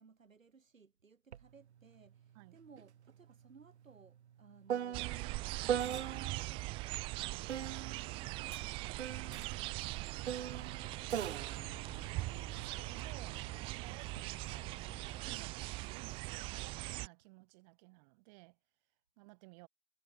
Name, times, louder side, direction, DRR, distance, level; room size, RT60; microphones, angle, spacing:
voice 1, 0.0-12.0 15.3-15.6, right 5 dB, 70° right, 3.4 m, -61 dB
sound 1, 1.3-1.5 1.8-6.6 7.5-13.0 13.9-14.3, right 9 dB, 55° right, 1.0 m, -41 dB
sound 2, 4.9-17.1, right 22 dB, 15° right, 0.7 m, -41 dB
sound 3, 10.2-15.4, left 6 dB, 10° left, 5.4 m, -59 dB
voice 2, 12.1-14.7 15.1-18.6 19.2-19.7, right 27 dB, 30° right, 5.4 m, -58 dB
figure-of-eight pair, 120°, 41 cm